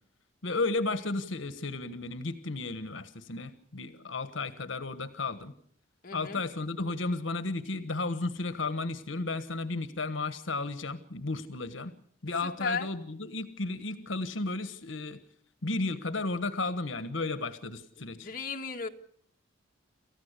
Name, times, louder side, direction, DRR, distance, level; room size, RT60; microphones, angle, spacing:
voice 1, 0.4-5.5 6.1-11.9 12.2-15.2 15.6-18.3, left 3 dB, 80° left, 12 dB, 1.3 m, -33 dB
voice 2, 6.0-6.4 12.4-12.9 18.0-18.9, left 4 dB, 45° left, 3 dB, 1.8 m, -35 dB
29.0 x 15.0 x 8.2 m, 0.64 s
head